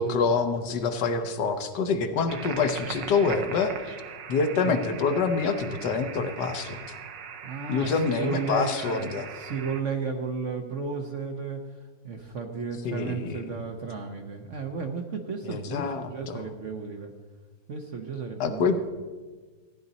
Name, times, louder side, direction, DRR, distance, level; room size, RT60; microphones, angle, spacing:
voice 1, 0.0-4.0 4.3-7.0 7.7-9.3 12.8-13.4 15.4-16.4 18.4-18.9, left 4 dB, 70° left, 8 dB, 1.4 m, -26 dB
sound 1, 2.3-9.8, right 7 dB, 75° right, 1.4 m, -40 dB
voice 2, 7.4-17.1 17.7-18.9, right 4 dB, 55° right, 4 dB, 0.9 m, -34 dB
14.5 x 10.0 x 4.0 m, 1.4 s
omnidirectional pair, 2.0 m